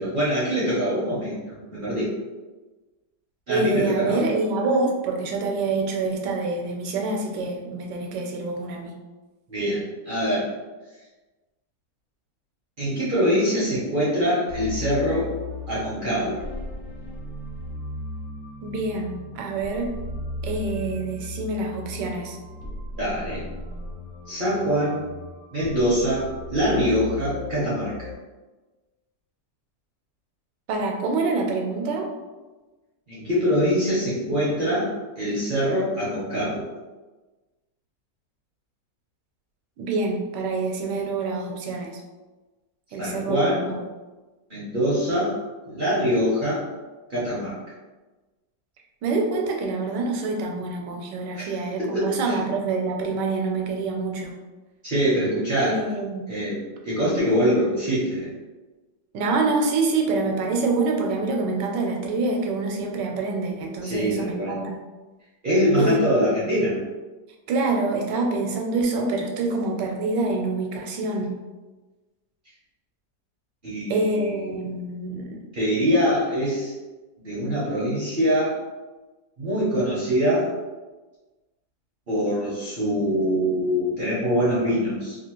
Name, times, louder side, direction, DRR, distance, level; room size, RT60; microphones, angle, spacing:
voice 1, 0.0-2.1 3.5-4.2 9.5-10.5 12.8-15.3 15.7-16.4 22.9-23.4 24.3-25.0 25.5-27.9 33.1-36.6 43.0-43.8 44.5-45.3 45.7-46.6 47.1-47.5 51.3-52.4 54.8-55.8 56.3-58.3 63.8-64.6 65.4-66.8 73.6-74.6 75.5-76.7 77.2-78.6 79.4-80.5 82.1-85.2, equal, 50° right, -8 dB, 0.6 m, -24 dB
voice 2, 3.5-9.0 18.6-19.9 20.4-22.4 30.7-32.1 39.8-42.0 42.9-43.8 49.0-54.3 55.6-56.3 59.1-64.7 65.8-66.2 67.5-71.3 73.9-75.4, right 3 dB, 85° right, 1 dB, 1.2 m, -26 dB
sound 1, 14.5-28.2, left 2 dB, 65° left, 1.1 m, -36 dB
2.9 x 2.4 x 2.9 m, 1.2 s
omnidirectional pair, 1.8 m